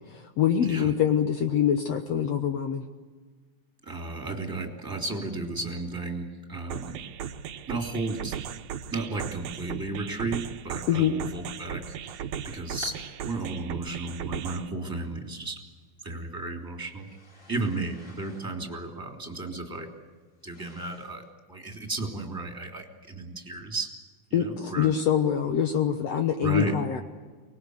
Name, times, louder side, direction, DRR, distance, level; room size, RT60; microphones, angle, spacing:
voice 1, 0.1-2.8 10.9-11.2 24.3-27.0, left 9 dB, 65° left, 6 dB, 2.1 m, -25 dB
voice 2, 3.8-7.0 7.7-8.4 8.9-12.2 12.5-15.6 16.0-17.1 17.5-19.9 20.4-21.2 21.5-23.9 24.3-24.9 26.4-26.7, right 2 dB, 5° right, 2 dB, 3.1 m, -34 dB
sound 1, 6.7-14.7, right 8 dB, 80° right, 2.3 m, -37 dB
sound 2, 12.2-13.0 14.0-14.1 15.3-15.4 16.9-21.3, left 1 dB, 25° left, 5.1 m, -52 dB
24.5 x 21.0 x 8.1 m, 1.4 s
omnidirectional pair, 3.4 m